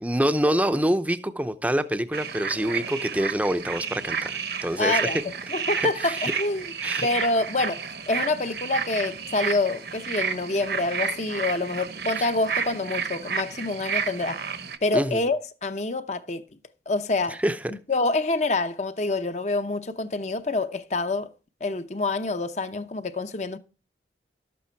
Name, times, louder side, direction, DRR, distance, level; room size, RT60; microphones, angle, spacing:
voice 1, 0.0-5.2 5.8-6.3 6.8-7.1 14.9-15.2 17.3-17.7, right 1 dB, 10° right, 0.6 m, -26 dB
sound 1, 2.1-14.8, right 6 dB, 60° right, 1.1 m, -31 dB
voice 2, 4.8-6.6 7.0-14.4 14.8-16.4 16.9-17.4 17.7-21.3 21.6-23.6, left 2 dB, 40° left, 0.8 m, -27 dB
12.5 x 8.5 x 4.5 m
head